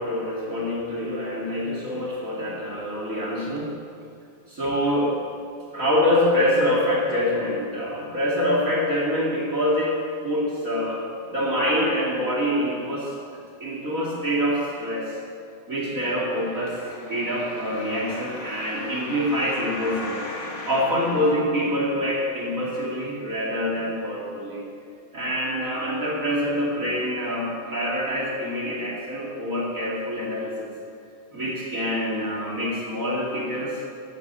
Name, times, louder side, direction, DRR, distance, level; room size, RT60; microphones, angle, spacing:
voice 1, 0.0-3.7 4.5-5.2 5.7-13.1 13.6-15.2 15.7-16.8 17.1-24.6 25.1-30.7 31.3-33.9, equal, 30° right, -5 dB, 1.5 m, -25 dB
sound 1, 16.2-22.2 22.8-22.9, left 2 dB, 85° left, 4.7 m, -38 dB
13.5 x 11.0 x 7.0 m, 2.4 s
omnidirectional pair, 5.8 m